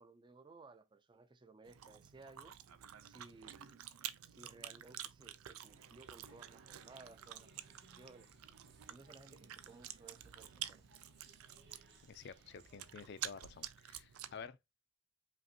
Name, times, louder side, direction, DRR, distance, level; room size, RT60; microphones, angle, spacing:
voice 1, 0.0-2.6 3.0-3.8 4.3-8.3 8.9-10.8, right 3 dB, 20° right, 0.4 m, -59 dB
Chewing mastication, 1.6-14.5, right 11 dB, 85° right, 0.4 m, -50 dB
sound 1, 5.7-13.7, right 3 dB, 55° right, 0.9 m, -66 dB
voice 2, 12.1-14.6, left 6 dB, 50° left, 0.4 m, -51 dB
5.2 x 2.5 x 2.7 m
head